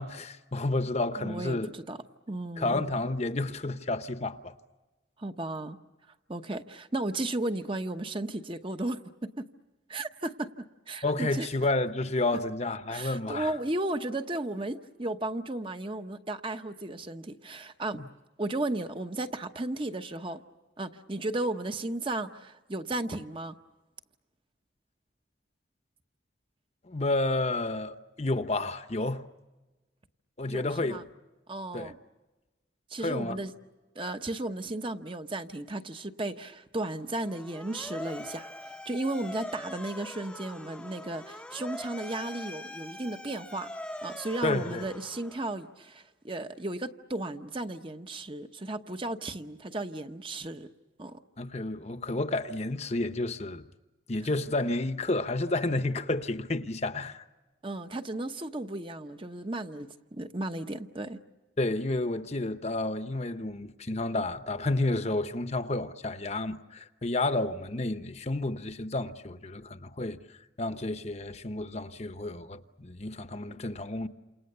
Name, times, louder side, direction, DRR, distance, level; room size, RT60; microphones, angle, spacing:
voice 1, 0.0-1.7 2.6-4.5 11.0-13.5 17.9-18.1 26.9-29.2 30.4-31.0 31.7-31.9 33.0-33.4 44.4-44.8 51.4-53.6 54.1-57.2 61.6-70.2 70.6-74.1, left 2 dB, 35° left, 1.0 m, -30 dB
voice 2, 1.2-2.8 5.2-5.8 6.3-9.4 9.9-11.5 12.9-18.0 18.4-20.4 20.8-23.6 30.5-31.0 31.5-32.0 32.9-33.5 33.9-43.7 44.0-50.7 51.0-51.2 57.6-61.2, right 2 dB, 25° right, 1.0 m, -35 dB
Motor vehicle (road) / Siren, 37.1-45.7, left 1 dB, 5° left, 0.8 m, -43 dB
29.0 x 28.0 x 6.8 m
head